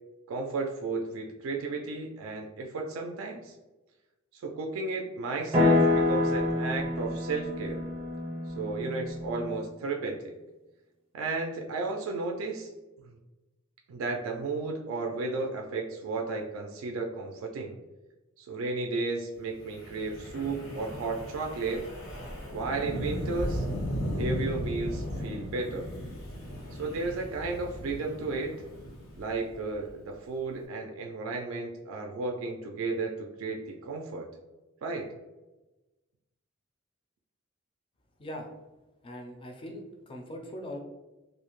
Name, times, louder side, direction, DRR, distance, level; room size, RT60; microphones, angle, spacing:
voice 1, 0.3-3.5 4.3-7.8 8.5-10.2 11.1-12.7 13.9-17.8 18.4-21.8 22.5-23.6 24.2-25.9 26.7-28.5 29.2-34.3 34.8-35.1, right 3 dB, 80° right, 1 dB, 0.3 m, -33 dB
sound 1, 5.5-9.6, left 2 dB, 30° right, 0.5 m, -27 dB
Wind, 19.6-29.9, equal, 85° left, 0.8 m, -36 dB
voice 2, 39.0-40.8, equal, 25° left, 2 dB, 0.4 m, -41 dB
2.5 x 2.0 x 2.9 m, 1.1 s
head